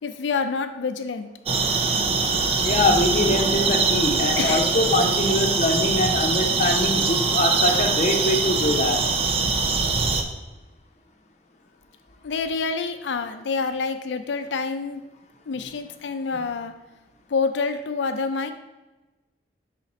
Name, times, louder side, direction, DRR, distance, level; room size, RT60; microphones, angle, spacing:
voice 1, 0.0-1.3 4.4-4.7 12.2-15.0 15.5-16.7 17.3-18.5, left 4 dB, 85° left, 8 dB, 0.4 m, -27 dB
sound 1, 1.5-10.2, right 4 dB, 35° right, 0.5 m, -23 dB
voice 2, 2.6-9.0, left 2 dB, 40° left, 2 dB, 0.7 m, -23 dB
5.7 x 4.0 x 4.2 m, 1.1 s
head